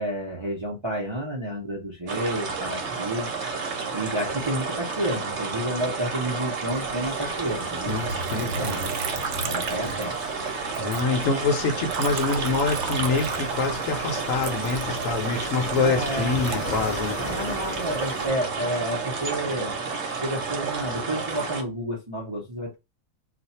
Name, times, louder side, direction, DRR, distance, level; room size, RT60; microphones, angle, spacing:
voice 1, 0.0-3.3 3.9-8.0 8.3-8.8 9.4-10.1 15.7-16.5 17.2-19.7 20.0-22.8, right 1 dB, 30° right, 0.6 m, -30 dB
sound 1, 2.1-21.6, right 4 dB, 55° right, 1.0 m, -31 dB
sound 2, 6.7-18.3, left 1 dB, 35° left, 0.9 m, -38 dB
voice 2, 7.9-8.9 9.8-10.0 10.8-17.2, left 4 dB, 65° left, 1.0 m, -26 dB
Liquid, 7.9-10.5 10.7-13.9 14.4-17.4 18.0-18.5, right 5 dB, 80° right, 1.0 m, -34 dB
2.5 x 2.3 x 4.1 m
omnidirectional pair, 1.5 m